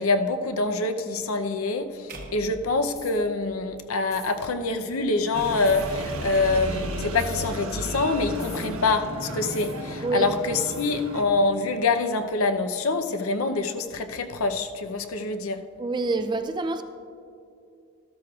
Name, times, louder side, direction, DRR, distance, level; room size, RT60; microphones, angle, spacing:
voice 1, 0.0-15.6, left 3 dB, 70° left, 7 dB, 0.6 m, -25 dB
sound 1, 2.1-4.4, right 1 dB, 40° right, 0.9 m, -45 dB
sound 2, 2.9-3.2 4.1-4.4 5.6-5.9 7.1-7.5 8.4-8.7 9.5-9.8 10.7-11.0, left 5 dB, 30° left, 1.8 m, -43 dB
sound 3, 5.3-11.2, right 1 dB, 80° right, 1.1 m, -33 dB
voice 2, 15.8-16.8, right 3 dB, 20° right, 9 dB, 0.4 m, -26 dB
13.0 x 13.0 x 2.4 m, 2.4 s
head